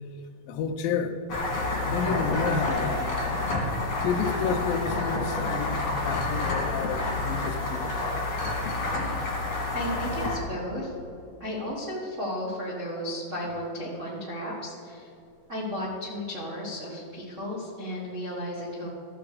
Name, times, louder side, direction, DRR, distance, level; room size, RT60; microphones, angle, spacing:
voice 1, 0.5-1.1 1.8-7.9, left 6 dB, 85° left, 7 dB, 2.3 m, -31 dB
sound 1, 1.3-10.4, left 2 dB, 40° left, 2.9 m, -29 dB
voice 2, 9.7-10.9 11.4-15.1 15.5-18.9, equal, 80° right, -6 dB, 0.6 m, -34 dB
14.0 x 6.8 x 4.9 m, 2.8 s
omnidirectional pair, 4.2 m